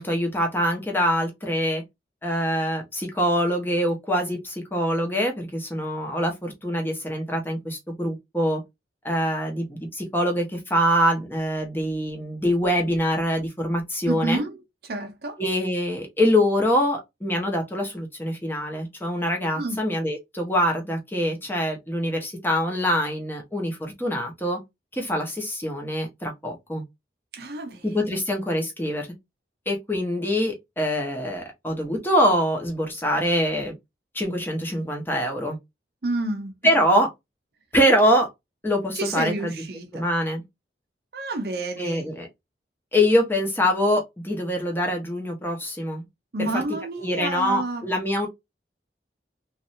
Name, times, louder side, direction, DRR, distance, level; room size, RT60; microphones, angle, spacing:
voice 1, 0.0-1.8 2.2-8.6 9.0-14.4 15.4-24.6 24.9-26.8 27.8-29.1 29.7-33.7 34.1-35.6 36.6-37.1 37.7-38.3 38.6-39.5 39.9-40.4 41.8-42.3 42.9-46.0 46.4-46.6 47.0-48.3, equal, 10° left, 0.9 m, -24 dB
voice 2, 14.1-15.4 19.5-19.8 27.3-28.2 36.0-36.6 38.9-40.0 41.1-42.1 46.3-47.8, right 2 dB, 60° right, 0.6 m, -30 dB
3.1 x 2.6 x 2.7 m
head